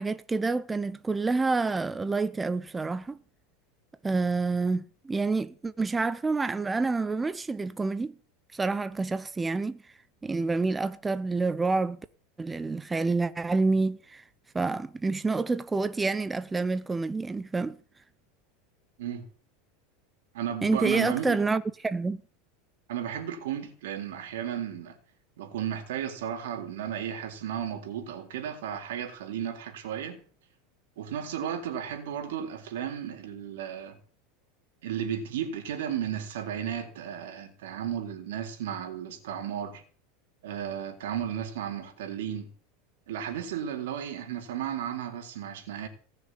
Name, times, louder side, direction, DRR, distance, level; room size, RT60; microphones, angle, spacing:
voice 1, 0.0-3.2 4.0-8.1 8.5-9.8 10.2-12.0 12.4-14.2 14.5-17.8 20.6-22.2, right 3 dB, 10° right, 0.6 m, -28 dB
voice 2, 20.3-21.4 22.9-25.0 25.4-30.2 31.0-34.0 34.8-39.8 40.4-42.5 43.1-45.9, right 9 dB, 85° right, 3.8 m, -34 dB
18.5 x 6.7 x 9.3 m
supercardioid pair, 155°, 0 cm